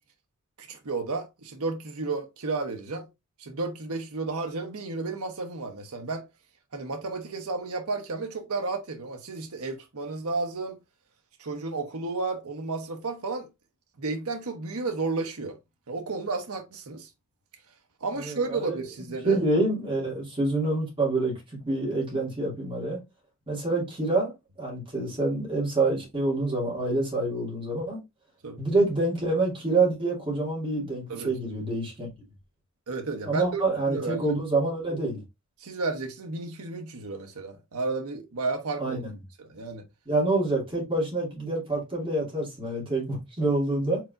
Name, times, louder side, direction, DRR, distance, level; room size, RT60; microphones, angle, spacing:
voice 1, 0.6-3.1 3.4-6.2 6.7-10.8 11.4-13.5 14.0-15.6 15.9-17.1 18.0-19.4 28.4-28.6 31.1-31.3 32.9-33.6 33.9-34.3 35.6-39.0 39.4-39.8, right 3 dB, 75° right, 0.8 m, -32 dB
voice 2, 18.2-18.8 19.2-21.3 21.7-23.0 23.5-24.3 24.6-28.0 28.6-32.1 33.2-35.2 38.8-39.1 40.1-44.0, right 2 dB, 25° right, 2.3 m, -27 dB
4.6 x 3.9 x 2.4 m
head